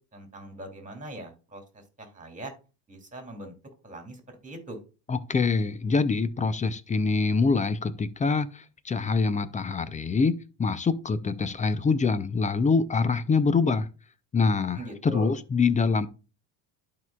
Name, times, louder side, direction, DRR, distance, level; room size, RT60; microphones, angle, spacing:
voice 1, 0.1-2.5 2.9-3.5 3.8-4.8 14.7-15.3, right 1 dB, 15° right, 2.6 m, -41 dB
voice 2, 5.1-13.9 14.3-16.1, left 4 dB, 15° left, 0.5 m, -25 dB
12.0 x 4.7 x 2.3 m
supercardioid pair, 95°, 48 cm